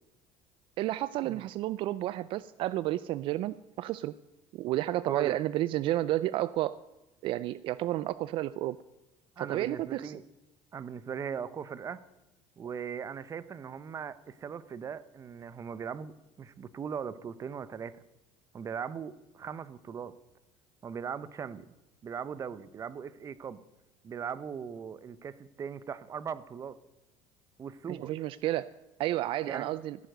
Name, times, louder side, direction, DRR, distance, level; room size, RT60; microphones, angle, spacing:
voice 1, 0.8-4.1 4.5-6.8 7.2-8.8 9.4-10.2 27.9-28.7 29.0-30.0, right 15 dB, 60° right, 17 dB, 0.4 m, -31 dB
voice 2, 5.1-5.4 9.4-10.2 10.7-12.0 12.6-18.0 18.5-20.1 20.8-21.7 22.0-23.6 24.0-26.8 27.6-28.1 29.4-29.7, right 7 dB, 30° right, 17 dB, 0.7 m, -39 dB
15.0 x 9.0 x 6.6 m, 0.99 s
supercardioid pair, 110°, 10 cm